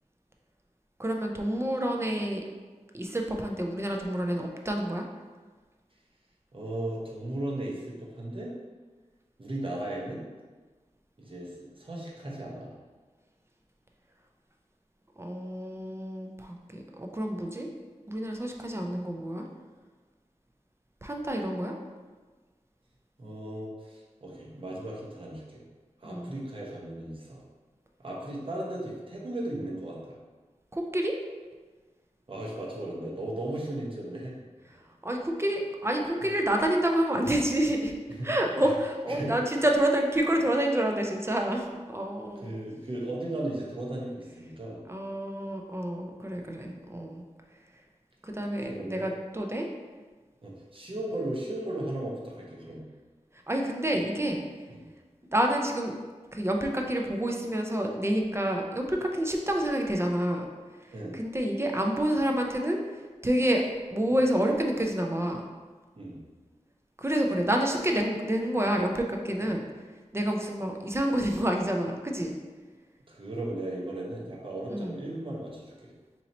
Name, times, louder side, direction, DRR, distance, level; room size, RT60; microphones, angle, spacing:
voice 1, 1.0-2.4 2.9-5.0 15.2-17.7 18.1-19.5 21.0-21.7 26.0-26.3 30.7-31.1 35.0-37.9 38.2-42.5 44.9-47.2 48.2-49.7 53.5-54.4 55.3-56.0 56.3-60.5 61.1-62.8 63.2-63.6 63.9-65.5 67.0-69.6 70.1-72.3 74.7-75.0, right 1 dB, 20° right, 2 dB, 0.4 m, -28 dB
voice 2, 6.5-8.5 9.4-10.2 11.2-12.7 23.2-25.6 26.0-27.4 28.0-30.2 32.3-34.4 38.2-38.7 39.1-39.3 42.4-44.8 48.7-49.1 50.4-52.9 54.7-54.8 60.9-61.2 65.9-66.2 69.4-69.6 73.1-75.9, right 1 dB, 45° right, -4 dB, 0.8 m, -36 dB
2.9 x 2.8 x 4.0 m, 1.3 s
wide cardioid pair, 60°, 12 cm